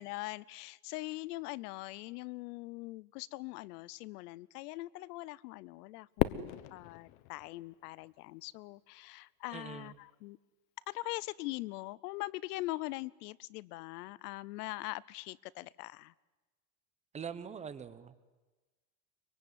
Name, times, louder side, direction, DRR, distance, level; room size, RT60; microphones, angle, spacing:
voice 1, 0.0-10.4 10.9-16.1, left 20 dB, 80° left, 23 dB, 0.9 m, -42 dB
Fireworks, 6.2-8.5, left 15 dB, 55° left, 1.1 m, -36 dB
voice 2, 9.5-9.9 17.1-18.1, right 7 dB, 15° right, 13 dB, 0.8 m, -43 dB
23.5 x 23.0 x 9.5 m, 1.2 s
cardioid pair, 170°, 46 cm